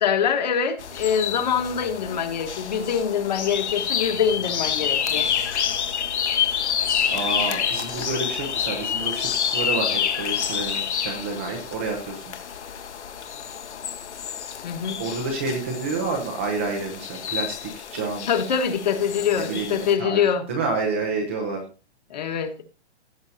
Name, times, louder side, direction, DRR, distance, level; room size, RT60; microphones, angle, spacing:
voice 1, 0.0-5.3 14.6-15.0 18.3-20.5 22.1-22.6, left 7 dB, 40° left, 1.5 m, -24 dB
bird in rainforest, 0.8-19.9, left 8 dB, 80° left, 1.7 m, -28 dB
voice 2, 7.1-12.3 15.0-18.3 19.3-20.2 20.5-21.6, right 4 dB, 10° right, 0.7 m, -29 dB
16.5 x 8.0 x 2.8 m
hypercardioid pair, 180°, 34 cm